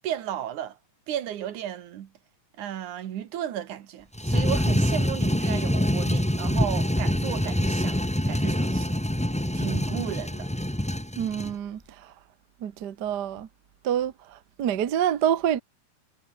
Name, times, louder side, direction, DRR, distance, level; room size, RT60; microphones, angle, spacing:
voice 1, 0.0-0.8 1.1-2.1 2.6-8.0 8.3-9.0 9.5-10.5, right 10 dB, 75° right, 3.0 m, -34 dB
sound 1, 4.1-11.5, equal, 5° left, 1.4 m, -25 dB
voice 2, 11.2-12.1 12.6-13.5 13.8-15.6, right 10 dB, 55° right, 1.2 m, -27 dB
omnidirectional pair, 3.6 m